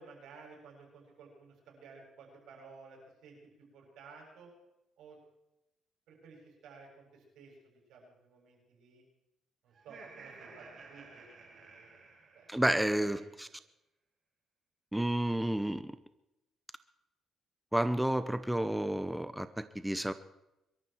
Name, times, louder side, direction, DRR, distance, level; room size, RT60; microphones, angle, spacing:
voice 1, 0.0-4.5 5.0-5.2 6.1-9.0 9.6-12.0 12.3-12.5 13.0-13.3, right 4 dB, 85° right, 0 dB, 7.3 m, -55 dB
Laughter, 9.7-13.0, right 4 dB, 55° right, 4.6 m, -54 dB
voice 2, 12.5-13.5 14.9-16.0 17.7-20.1, right 1 dB, 5° right, 12 dB, 0.8 m, -31 dB
23.5 x 13.0 x 4.5 m, 0.90 s
cardioid pair, 90°, 0 cm